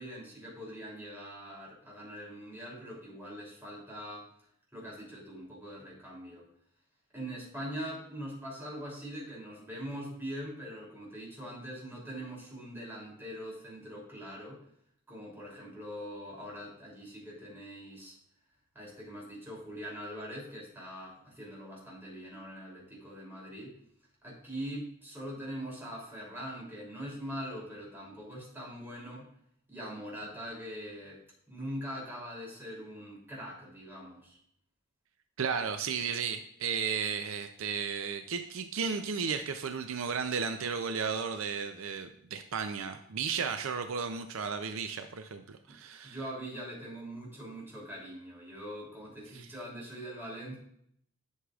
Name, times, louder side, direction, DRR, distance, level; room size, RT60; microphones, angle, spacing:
voice 1, 0.0-4.3 4.7-6.4 7.1-14.6 15.1-18.2 18.7-23.8 24.2-29.3 29.7-31.2 31.5-34.4 45.7-45.8 46.0-50.6, equal, 10° right, -4 dB, 2.9 m, -42 dB
voice 2, 35.4-46.2 49.3-49.5, right 6 dB, 70° right, 8 dB, 0.5 m, -34 dB
11.0 x 6.3 x 2.4 m, 0.69 s
head